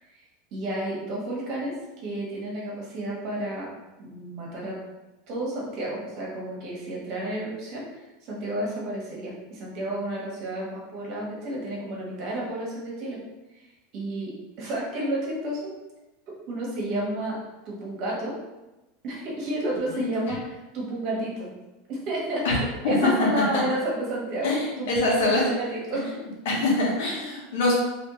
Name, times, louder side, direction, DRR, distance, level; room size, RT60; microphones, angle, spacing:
voice 1, 0.5-1.7 2.0-3.7 4.0-4.8 5.3-13.2 13.9-15.7 16.5-17.4 17.6-18.3 19.0-21.5 21.9-26.1, right 1 dB, 45° right, -4 dB, 1.4 m, -31 dB
voice 2, 19.9-20.3 22.4-22.5 22.8-23.6 24.4-25.5 26.4-27.7, left 2 dB, 75° left, -4 dB, 1.5 m, -24 dB
3.4 x 3.1 x 3.1 m, 1.1 s
supercardioid pair, 135°, 0 cm